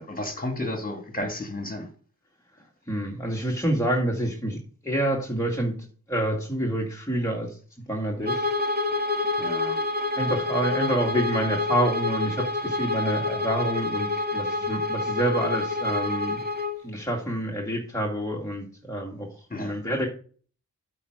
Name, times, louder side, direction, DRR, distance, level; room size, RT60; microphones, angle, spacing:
voice 1, 0.0-1.9 9.4-9.8 19.5-19.8, left 1 dB, 25° left, 2.7 m, -32 dB
voice 2, 2.9-4.6 4.8-5.7 6.1-7.6 7.9-8.4 10.1-16.4 16.8-20.1, right 1 dB, 10° left, 2.1 m, -27 dB
Bowed string instrument, 8.2-16.8, left 2 dB, 30° right, 2.1 m, -27 dB
8.4 x 4.7 x 6.5 m
cardioid pair, 55°, 34 cm